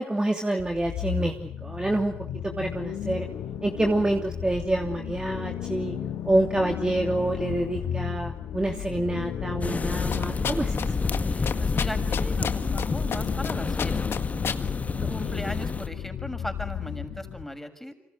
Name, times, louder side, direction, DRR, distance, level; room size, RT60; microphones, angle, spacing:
voice 1, 0.0-2.1 2.4-3.3 3.6-5.9 6.3-10.7, right 1 dB, 15° right, 3 dB, 3.0 m, -27 dB
sound 1, 0.6-17.5, left 9 dB, 75° left, 3.2 m, -34 dB
sound 2, 9.6-15.9, left 4 dB, 30° left, 1.6 m, -29 dB
sound 3, 10.1-10.9 11.1-11.2 11.5-12.9 13.1-13.5 13.8-14.6, left 7 dB, 55° left, 1.9 m, -30 dB
voice 2, 11.3-14.0 14.9-18.1, left 1 dB, 5° left, 6 dB, 6.3 m, -38 dB
27.5 x 25.5 x 7.8 m, 0.65 s
hypercardioid pair, 50°, 5 cm